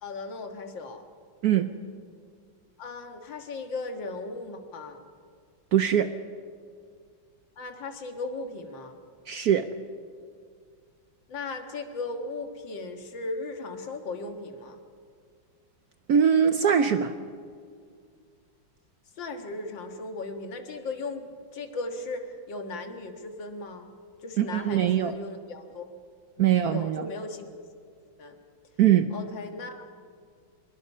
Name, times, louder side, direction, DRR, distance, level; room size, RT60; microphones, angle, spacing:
voice 1, 0.0-1.0 2.8-5.0 7.6-9.0 11.3-14.8 19.2-23.9 24.2-25.9 26.4-27.5 28.2-28.4 29.1-29.8, left 3 dB, 70° left, 5 dB, 2.3 m, -37 dB
voice 2, 5.7-6.1 9.3-9.7 16.1-17.1 24.4-25.2 26.4-27.1 28.8-29.1, right 9 dB, 65° right, 10 dB, 1.0 m, -22 dB
24.0 x 22.0 x 5.5 m, 2.1 s
omnidirectional pair, 2.2 m